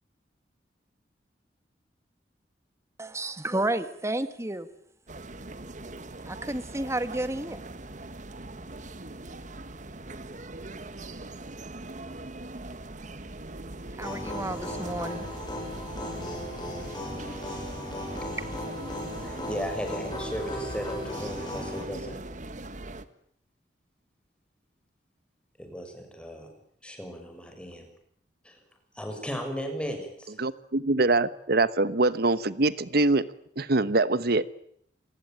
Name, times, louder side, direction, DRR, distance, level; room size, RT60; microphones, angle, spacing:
voice 1, 3.0-4.7 6.3-7.6 14.0-15.2, right 1 dB, 15° right, 1.8 m, -31 dB
sound 1, 5.1-23.0, right 2 dB, 45° right, 1.6 m, -41 dB
sound 2, 14.0-21.8, left 1 dB, 25° left, 7.7 m, -36 dB
voice 2, 19.2-22.2 25.6-26.5 26.8-27.9 28.4-28.6 28.9-30.4, equal, 5° left, 6.7 m, -36 dB
voice 3, 30.4-33.3 33.6-34.4, right 2 dB, 60° right, 1.2 m, -24 dB
27.5 x 20.5 x 9.0 m
head